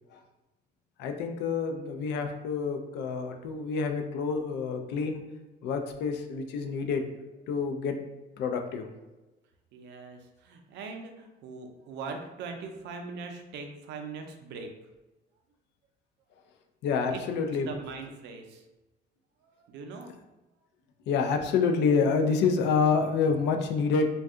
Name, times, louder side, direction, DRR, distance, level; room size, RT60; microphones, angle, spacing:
voice 1, 1.0-5.2 5.6-7.0 7.5-8.0 8.4-8.9 16.8-17.7 21.1-24.1, left 5 dB, 75° left, 5 dB, 0.4 m, -27 dB
voice 2, 9.7-14.7 17.1-18.7 19.4-20.1, right 4 dB, 75° right, 4 dB, 0.5 m, -41 dB
2.6 x 2.3 x 3.5 m, 1.1 s
cardioid pair, 150°, 18 cm